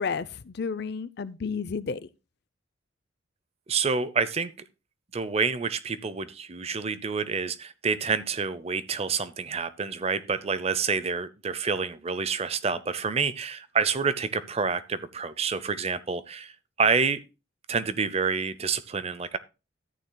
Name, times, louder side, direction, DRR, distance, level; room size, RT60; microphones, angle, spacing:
voice 1, 0.0-2.0, left 5 dB, 55° left, 0.5 m, -31 dB
voice 2, 3.7-4.5 5.1-17.2 17.7-19.4, right 5 dB, 30° right, 0.6 m, -28 dB
13.0 x 9.0 x 2.2 m
head